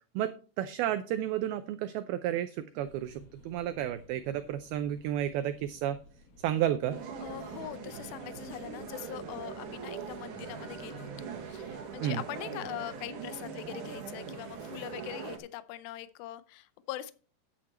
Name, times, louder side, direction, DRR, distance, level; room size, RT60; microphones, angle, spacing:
voice 1, 0.2-6.0 6.4-7.0 12.0-12.2, right 11 dB, 80° right, 10 dB, 2.2 m, -32 dB
sound 1, 2.8-12.2, left 1 dB, 35° left, 3.7 m, -58 dB
sound 2, 6.9-15.4, right 6 dB, 55° right, 2.5 m, -41 dB
voice 2, 7.2-17.1, left 14 dB, 90° left, 14 dB, 2.1 m, -42 dB
10.0 x 8.6 x 4.3 m, 0.36 s
omnidirectional pair, 5.0 m